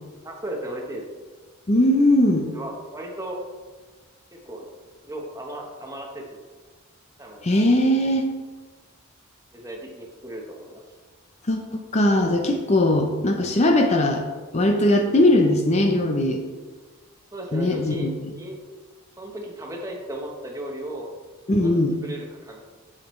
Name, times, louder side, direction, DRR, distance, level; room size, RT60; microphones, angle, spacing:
voice 1, 0.2-1.0 2.5-3.4 4.3-4.7 5.0-6.4 7.2-7.4 9.5-10.8 17.3-18.6 19.2-21.1 21.6-22.6, right 1 dB, 15° right, 0 dB, 1.0 m, -35 dB
voice 2, 1.7-2.5 7.4-8.3 11.5-14.2 14.5-16.4 17.5-18.1 21.5-22.0, left 1 dB, 30° left, 4 dB, 0.6 m, -20 dB
7.4 x 7.3 x 3.1 m, 1.4 s
head